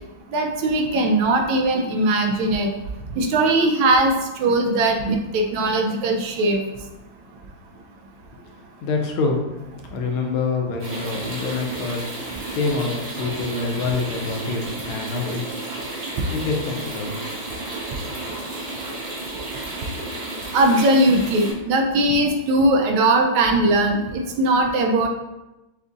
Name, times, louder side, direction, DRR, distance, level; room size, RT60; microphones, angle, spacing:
voice 1, 0.3-2.7 3.1-6.6 20.5-25.1, right 2 dB, 80° right, 2 dB, 1.3 m, -19 dB
voice 2, 8.8-9.4 9.9-12.1 12.5-15.6 16.3-17.2, left 4 dB, 80° left, 1 dB, 1.5 m, -26 dB
sound 1, 10.8-21.5, right 2 dB, 40° right, 1.2 m, -32 dB
6.5 x 2.5 x 2.4 m, 1.0 s
omnidirectional pair, 2.3 m